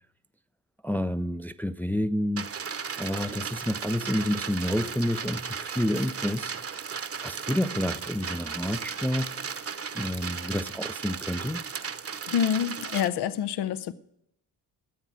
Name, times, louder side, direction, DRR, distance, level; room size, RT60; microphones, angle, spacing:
voice 1, 0.8-2.5 3.0-6.9 7.2-9.4 9.9-11.6, left 1 dB, 5° left, 0.4 m, -29 dB
sound 1, 2.4-13.1, right 6 dB, 35° right, 0.9 m, -35 dB
voice 2, 12.3-13.9, left 9 dB, 75° left, 0.7 m, -27 dB
13.5 x 8.0 x 6.1 m
cardioid pair, 75°, 40 cm